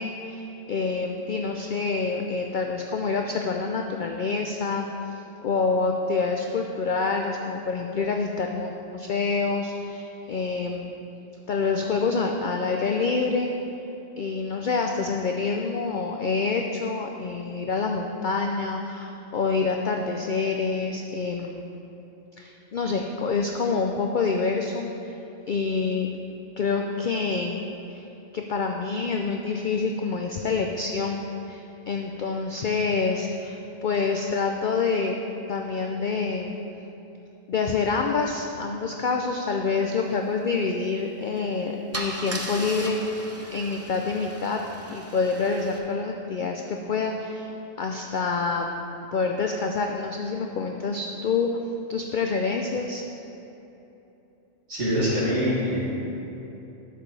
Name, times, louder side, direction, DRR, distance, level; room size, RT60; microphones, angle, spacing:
voice 1, 0.0-10.9 11.5-13.5 14.2-21.6 22.4-25.1 25.5-26.1 26.6-27.6 27.9-28.0 28.3-35.2 35.5-36.5 37.5-44.6 44.9-47.5 47.8-48.7 49.1-51.5 51.9-53.0, left 4 dB, 70° left, 2 dB, 0.4 m, -27 dB
Car / Engine starting / Idling, 41.2-41.4 41.9-45.8, right 1 dB, 20° right, 0.4 m, -37 dB
voice 2, 54.7-55.8, equal, 60° right, -8 dB, 2.6 m, -24 dB
11.0 x 7.2 x 3.3 m, 3.0 s
omnidirectional pair, 1.4 m